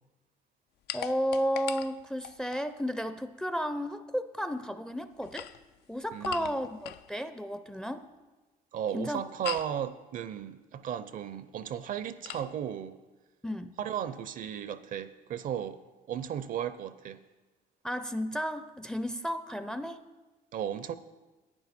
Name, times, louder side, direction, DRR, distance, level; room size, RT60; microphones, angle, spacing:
sound 1, 0.9-2.7 5.1-7.1 9.4-9.8 12.2-12.5, left 11 dB, 80° left, 0.4 m, -41 dB
voice 1, 0.9-5.5 5.9-8.1 8.9-9.2 13.4-13.7 17.8-20.0, equal, 5° left, 0.4 m, -33 dB
voice 2, 6.1-6.7 8.7-13.0 13.8-15.8 16.1-17.2 20.5-20.9, right 9 dB, 55° right, 0.5 m, -35 dB
11.0 x 9.3 x 4.2 m
cardioid pair, 110°, 17 cm